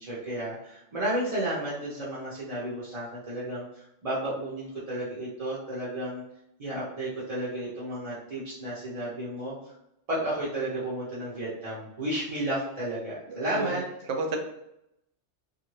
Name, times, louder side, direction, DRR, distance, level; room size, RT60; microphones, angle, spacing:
voice 1, 0.0-6.2 6.6-9.7 10.1-13.8, right 1 dB, 40° right, -8 dB, 0.6 m, -32 dB
voice 2, 13.3-13.8 14.1-14.4, right 3 dB, 75° right, 3 dB, 0.9 m, -31 dB
2.6 x 2.5 x 3.1 m, 0.83 s
omnidirectional pair, 1.3 m